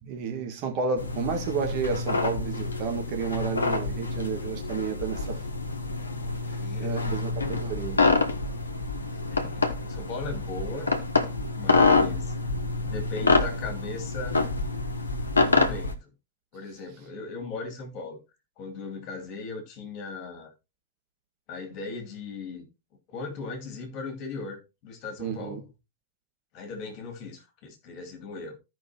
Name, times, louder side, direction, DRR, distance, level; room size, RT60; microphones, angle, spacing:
voice 1, 0.0-5.7 6.5-8.1 25.2-25.6, right 6 dB, 45° right, 1.8 m, -32 dB
sound 1, 1.0-15.9, left 3 dB, 75° left, 1.0 m, -27 dB
voice 2, 6.5-7.4 9.3-10.9 11.6-12.3 12.8-14.5 15.4-16.1 16.5-18.2 18.6-20.5 21.5-22.7 23.1-25.6 26.5-28.6, left 4 dB, 40° left, 2.4 m, -38 dB
15.0 x 5.3 x 2.9 m
figure-of-eight pair, 90°, 0 cm